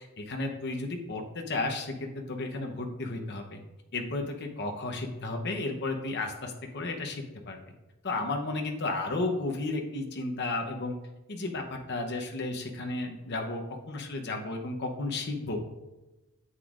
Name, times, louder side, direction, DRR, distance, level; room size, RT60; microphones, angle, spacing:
voice 1, 0.0-3.6 3.9-7.6 8.0-11.0 11.3-13.6 13.9-15.6, left 2 dB, 50° left, 3 dB, 0.9 m, -33 dB
9.7 x 8.0 x 2.5 m, 1.0 s
head